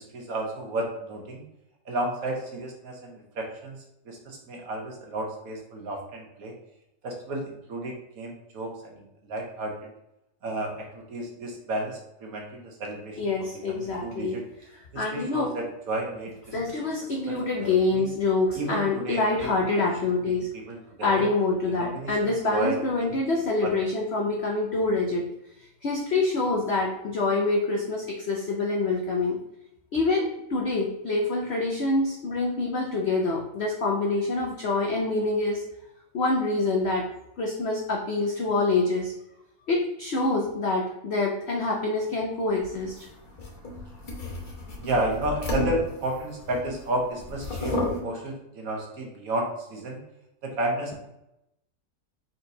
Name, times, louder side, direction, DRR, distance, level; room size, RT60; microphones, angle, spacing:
voice 1, 0.0-1.4 1.9-3.8 4.0-6.5 7.0-9.7 10.4-14.4 14.9-16.3 17.3-18.1 18.5-19.5 20.5-21.3 21.8-22.2 22.5-23.2 23.6-23.7 44.8-50.0 50.4-50.9, right 1 dB, 60° right, 0 dB, 1.2 m, -32 dB
voice 2, 13.2-14.4 14.9-15.6 16.5-20.5 21.0-25.3 25.8-29.4 29.9-35.6 36.1-37.1 37.4-39.1 39.7-43.0, left 3 dB, 75° left, -1 dB, 0.6 m, -26 dB
sound 1, 42.6-46.8 47.2-48.0, left 2 dB, 35° left, 0.9 m, -32 dB
4.3 x 4.0 x 2.7 m, 0.85 s
omnidirectional pair, 1.9 m